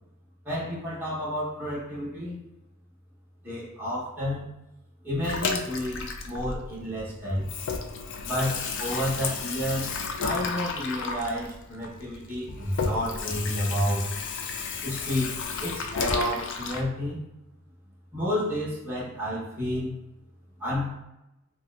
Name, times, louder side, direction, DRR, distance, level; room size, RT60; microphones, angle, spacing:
voice 1, 0.4-2.4 3.4-4.5 5.0-7.5 8.2-9.9 10.2-14.0 14.8-15.3 15.6-17.2 18.1-19.9 20.6-20.9, equal, 10° right, -9 dB, 0.8 m, -30 dB
Water tap faucet / Sink (filling or washing), 5.2-7.0 7.3-16.8, left 5 dB, 55° left, 0.4 m, -32 dB
4.0 x 2.3 x 2.3 m, 0.92 s
head